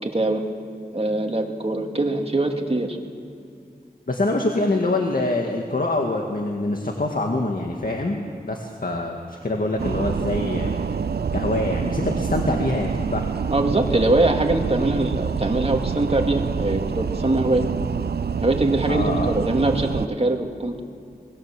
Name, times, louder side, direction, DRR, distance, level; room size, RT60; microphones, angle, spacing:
voice 1, 0.0-0.4 0.9-3.0 13.5-17.6 18.4-20.8, right 2 dB, 40° right, 2 dB, 2.5 m, -22 dB
voice 2, 4.1-10.7 11.3-13.2 18.9-19.3, left 2 dB, 65° left, 1 dB, 1.9 m, -25 dB
sound 1, 9.8-20.1, right 6 dB, 90° right, 0.5 m, -26 dB
26.5 x 20.5 x 7.5 m, 2.4 s
wide cardioid pair, 65°, 16 cm